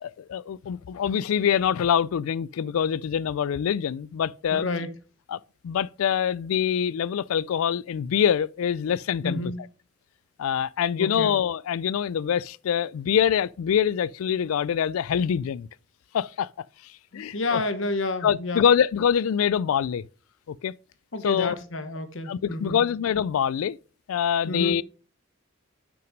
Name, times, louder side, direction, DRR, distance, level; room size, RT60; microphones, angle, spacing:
voice 1, 0.0-4.7 5.3-9.4 10.4-15.7 16.1-16.5 17.1-17.6 18.2-20.0 20.5-20.7 21.2-21.6 22.3-23.8 24.1-24.8, left 8 dB, 85° left, 0.3 m, -25 dB
voice 2, 4.5-4.9 9.2-9.7 11.0-11.4 17.1-18.6 21.1-22.8 24.5-24.8, left 2 dB, 65° left, 1.0 m, -30 dB
6.1 x 5.9 x 5.1 m
head